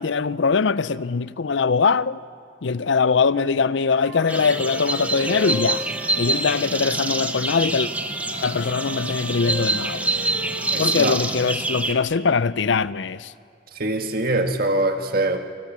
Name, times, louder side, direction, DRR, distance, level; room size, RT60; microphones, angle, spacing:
voice 1, 0.0-2.2 2.6-5.8 6.2-7.9 8.4-10.1 10.8-13.3, left 5 dB, 70° left, 0.5 m, -22 dB
Wind instrument woodwind instrument, 3.8-7.2 7.7-11.4, right 1 dB, 65° right, 5.2 m, -36 dB
sound 1, 4.3-11.9, right 2 dB, 10° right, 0.9 m, -26 dB
voice 2, 10.7-11.2 13.8-15.4, right 2 dB, 50° right, 1.8 m, -23 dB
26.5 x 20.5 x 7.4 m
head